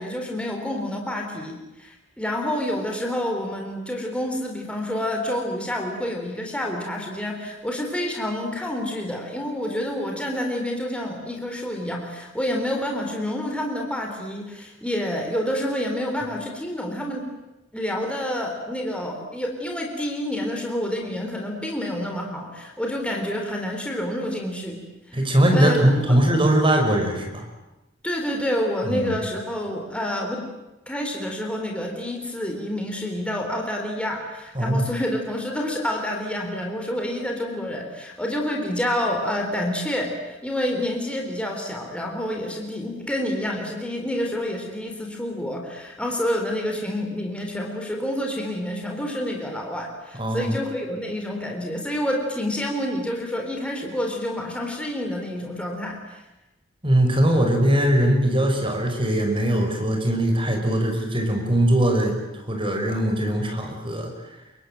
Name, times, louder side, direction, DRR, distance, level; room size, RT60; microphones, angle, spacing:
voice 1, 0.0-17.3 17.7-25.2 25.5-26.2 28.0-30.5 30.9-56.2, left 1 dB, 5° left, 1 dB, 3.8 m, -28 dB
voice 2, 25.1-27.4 28.9-29.3 34.5-34.8 50.2-50.6 56.8-62.2 62.5-64.1, right 1 dB, 30° right, 3 dB, 5.7 m, -21 dB
26.5 x 23.0 x 9.2 m, 0.99 s
head